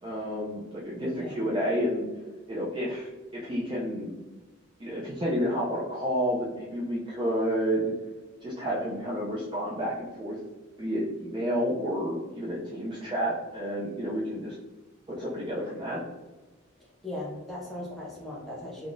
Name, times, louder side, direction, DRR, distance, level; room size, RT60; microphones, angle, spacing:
voice 1, 0.0-2.1 2.5-4.1 4.8-7.9 8.4-10.4 10.8-14.5 15.1-16.0, equal, 25° right, -6 dB, 0.4 m, -30 dB
voice 2, 1.0-1.4 17.0-18.9, left 1 dB, ahead, -6 dB, 0.9 m, -38 dB
3.5 x 2.3 x 2.5 m, 1.2 s
head